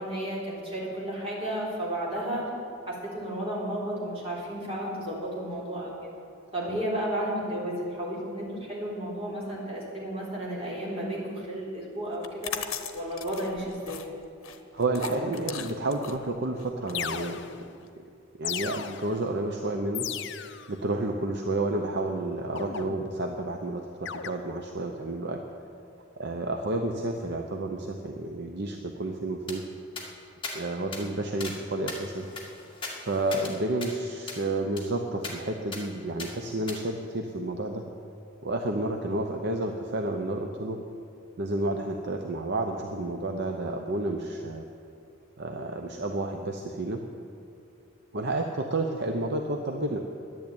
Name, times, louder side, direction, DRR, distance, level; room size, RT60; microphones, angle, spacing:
voice 1, 0.0-2.5 2.9-6.1 6.5-12.5 12.9-14.0 30.8-31.0, right 1 dB, 30° right, -5 dB, 3.8 m, -33 dB
sound 1, 12.1-17.9, left 8 dB, 75° left, 0.9 m, -39 dB
voice 2, 14.7-17.7 18.0-18.1 18.4-20.1 20.7-25.4 26.2-29.6 30.5-32.3 33.0-37.8 38.4-40.8 41.4-44.6 45.4-47.0 48.1-50.0, right 2 dB, 55° right, 3 dB, 0.8 m, -30 dB
sound 2, 16.3-16.4 16.9-17.8 18.4-19.3 19.9-20.7 22.6-23.3 24.1-24.3, left 8 dB, 55° left, 0.6 m, -36 dB
sound 3, 29.5-29.6 30.0-30.1 30.4-30.6 30.9-31.0 31.4-31.6 31.9-33.5 33.8-33.9 34.3-34.4 34.8-34.9 35.2-35.4 35.7-35.8 36.2-36.3 36.7-36.8, left 3 dB, 25° left, 2.0 m, -38 dB
11.0 x 11.0 x 8.8 m, 2.5 s
head